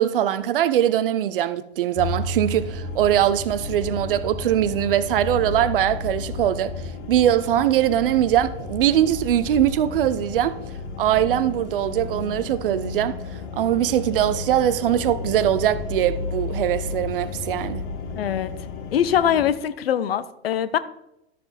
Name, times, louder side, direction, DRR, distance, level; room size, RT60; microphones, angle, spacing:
voice 1, 0.0-6.7 7.1-10.6 11.0-13.2 13.6-17.8, right 11 dB, 55° right, 0.7 m, -21 dB
sound 1, 2.0-19.5, left 3 dB, 50° left, 1.3 m, -32 dB
voice 2, 18.2-18.5 18.9-20.8, left 9 dB, 65° left, 0.8 m, -22 dB
12.5 x 6.7 x 4.2 m
figure-of-eight pair, 90°, 32 cm